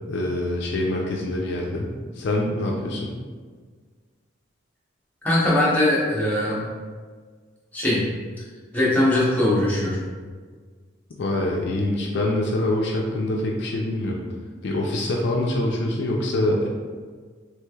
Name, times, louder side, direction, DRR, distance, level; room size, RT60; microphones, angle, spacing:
voice 1, 0.1-1.9 2.2-3.1 11.2-14.2 14.6-16.7, left 1 dB, 60° left, -1 dB, 0.4 m, -25 dB
voice 2, 5.2-6.6 7.7-8.0 8.7-10.0, left 1 dB, 10° left, -8 dB, 0.7 m, -20 dB
3.1 x 3.1 x 2.3 m, 1.5 s
head